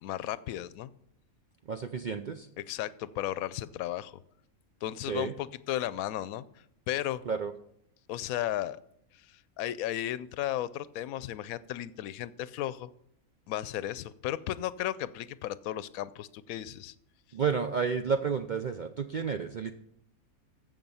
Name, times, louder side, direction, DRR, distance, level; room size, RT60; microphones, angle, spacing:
voice 1, 0.0-0.9 2.6-4.1 4.8-7.2 8.1-8.8 9.1-12.9 13.5-16.9, left 13 dB, 80° left, 17 dB, 1.0 m, -35 dB
voice 2, 1.7-2.5 5.1-5.3 7.3-7.5 17.3-19.7, right 6 dB, 70° right, 8 dB, 0.4 m, -31 dB
14.5 x 5.5 x 5.5 m, 0.72 s
omnidirectional pair, 1.5 m